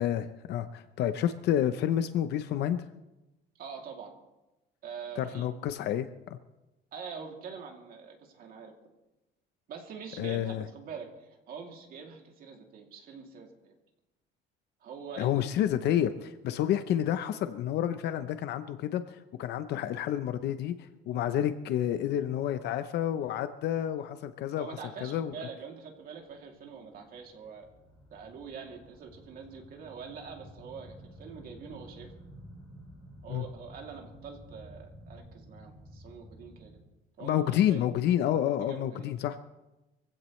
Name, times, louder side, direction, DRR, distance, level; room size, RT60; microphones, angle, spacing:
voice 1, 0.0-2.8 5.2-6.4 10.2-10.6 15.2-25.3 33.3-33.4 37.2-39.5, left 11 dB, 65° left, 10 dB, 0.8 m, -29 dB
voice 2, 3.6-4.1 4.8-5.4 6.9-8.7 9.7-13.7 14.8-15.5 24.6-27.6 28.1-32.1 33.2-36.8 37.2-37.8 38.7-39.1, right 6 dB, 50° right, 1 dB, 2.8 m, -44 dB
sound 1, 26.3-36.8, equal, ahead, 6.3 m, -52 dB
24.0 x 16.0 x 3.2 m, 1.0 s
cardioid pair, 160°, 19 cm